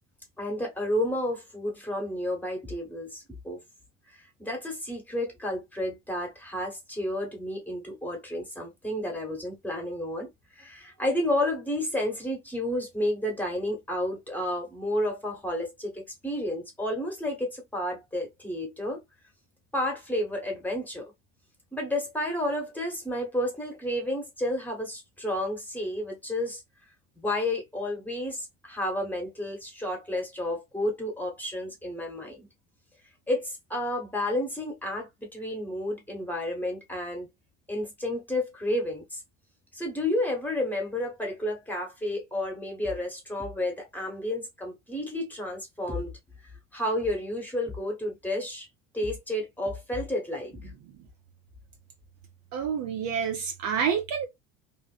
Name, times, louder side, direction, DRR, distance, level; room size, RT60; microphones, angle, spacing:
voice 1, 0.4-3.6 4.1-19.0 19.7-21.0 21.7-26.6 27.1-32.5 33.3-37.3 37.7-39.2 39.7-46.1 46.4-48.7 48.9-50.7, left 1 dB, 5° left, 1.2 m, -31 dB
voice 2, 52.5-54.3, right 7 dB, 45° right, 0.7 m, -28 dB
2.6 x 2.4 x 2.4 m
figure-of-eight pair, 70°, 38 cm